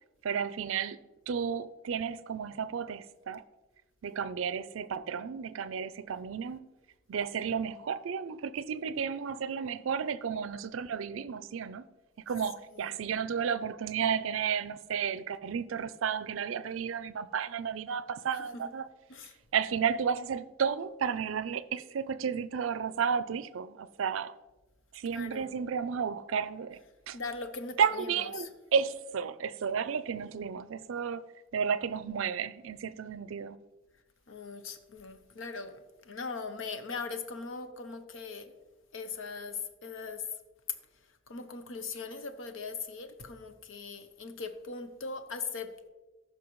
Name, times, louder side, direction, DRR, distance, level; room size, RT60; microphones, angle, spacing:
voice 1, 0.2-1.0 1.3-3.4 4.0-6.7 7.1-11.9 12.3-18.9 19.5-24.3 24.9-26.8 27.1-27.2 27.8-33.6, right 7 dB, 80° right, 0.4 m, -32 dB
voice 2, 25.1-25.5 27.1-28.1 28.4-28.5 34.3-35.8 36.0-38.5 38.9-40.2 41.3-45.9, left 4 dB, 80° left, 0.8 m, -40 dB
14.5 x 5.8 x 3.1 m
head